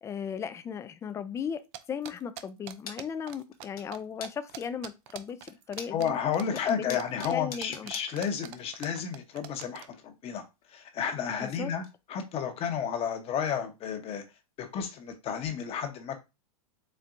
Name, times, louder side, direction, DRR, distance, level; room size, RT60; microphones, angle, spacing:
voice 1, 0.0-1.6 1.9-6.1 6.6-7.0 7.3-7.9 11.4-11.7, left 7 dB, 15° left, 0.3 m, -36 dB
sound 1, 1.7-3.7 3.9-4.0 4.2-9.9, right 12 dB, 45° right, 0.5 m, -43 dB
sound 2, 2.8-3.0 3.3-3.9 4.2-4.8 5.3-6.2 6.5-8.6 8.9-9.0 10.2-10.3 10.6-11.5 11.8-11.9 12.3-12.4 12.9-13.0 13.5-13.6 14.8-14.9, left 6 dB, 75° left, 1.1 m, -44 dB
voice 2, 5.9-10.4 10.7-11.8 12.1-14.2 14.6-16.2, left 7 dB, 30° left, 0.9 m, -32 dB
4.3 x 3.3 x 2.5 m
hypercardioid pair, 120°, 19 cm